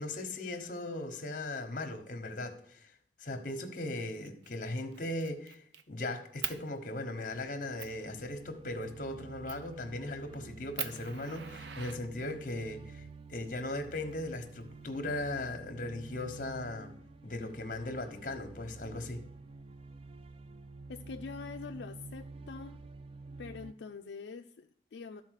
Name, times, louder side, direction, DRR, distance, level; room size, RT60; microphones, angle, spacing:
voice 1, 0.0-2.9 3.2-13.0 13.3-16.9 17.2-19.2, left 2 dB, 50° left, 7 dB, 1.1 m, -38 dB
Fire, 4.2-4.5 4.9-5.8 6.4-6.6 7.2-7.3 7.8-8.0 9.5-9.7 10.2-10.3 10.8-12.5 13.6-14.6, right 9 dB, 80° right, 0.6 m, -41 dB
sound 1, 7.2-23.7, right 4 dB, 30° right, 0.3 m, -49 dB
voice 2, 20.9-22.8 23.4-25.2, left 5 dB, 80° left, 5 dB, 0.4 m, -44 dB
12.5 x 4.2 x 6.4 m, 0.65 s
head